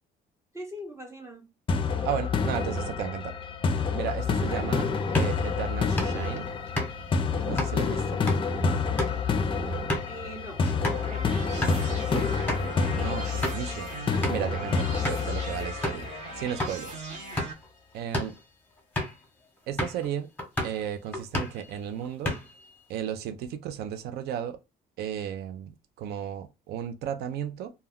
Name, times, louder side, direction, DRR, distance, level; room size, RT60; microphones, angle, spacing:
voice 1, 0.5-1.5 4.5-5.0 10.1-11.7 15.1-15.4, equal, 15° right, 0.6 m, -43 dB
sound 1, 1.7-16.6, left 4 dB, 30° left, 0.4 m, -28 dB
voice 2, 2.0-3.3 3.9-6.5 7.4-8.2 12.1-13.9 14.3-16.1 16.4-16.9 17.9-18.3 19.7-20.3 20.6-22.3 22.9-24.6 25.0-25.7 26.0-27.7, right 9 dB, 70° right, 0.4 m, -34 dB
sound 2, 5.0-11.1 11.5-11.8 12.2-12.3 12.5-12.7 13.2-13.7 14.2-14.5 15.0-15.3 15.8-16.1 16.6-16.8 17.2-17.7 18.0-18.4 19.0-19.2 19.8-20.1 20.4-20.8 21.1-21.7 22.0-22.7, left 1 dB, 10° left, 0.9 m, -32 dB
sound 3, 10.7-17.5, right 2 dB, 45° right, 1.0 m, -40 dB
2.2 x 2.1 x 3.5 m
cardioid pair, 110°, 17 cm